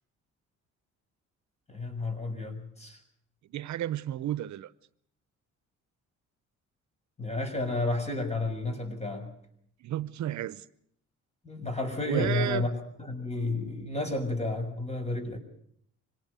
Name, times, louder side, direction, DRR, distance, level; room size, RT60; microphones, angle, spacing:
voice 1, 1.7-3.0 7.2-9.3 11.4-12.7 13.0-15.4, left 2 dB, 20° left, 6.5 m, -31 dB
voice 2, 3.4-4.7 9.8-10.6 12.0-12.7, right 13 dB, 70° right, 0.8 m, -32 dB
25.5 x 18.5 x 6.8 m
cardioid pair, 90°, 30 cm